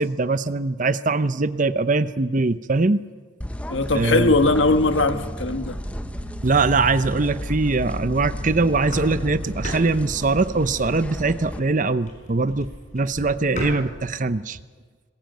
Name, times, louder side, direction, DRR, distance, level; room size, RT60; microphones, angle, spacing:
voice 1, 0.0-3.0 3.9-4.3 6.4-14.6, right 3 dB, 40° right, 13 dB, 0.8 m, -22 dB
sound 1, 3.4-11.6, equal, 5° left, 0.8 m, -35 dB
voice 2, 3.7-5.8, left 2 dB, 65° left, 8 dB, 1.5 m, -20 dB
sound 2, 3.7-9.8, equal, 65° right, 6.0 m, -34 dB
sound 3, 8.6-14.3, left 1 dB, 40° left, 5.7 m, -38 dB
22.0 x 20.5 x 9.2 m, 1.5 s
head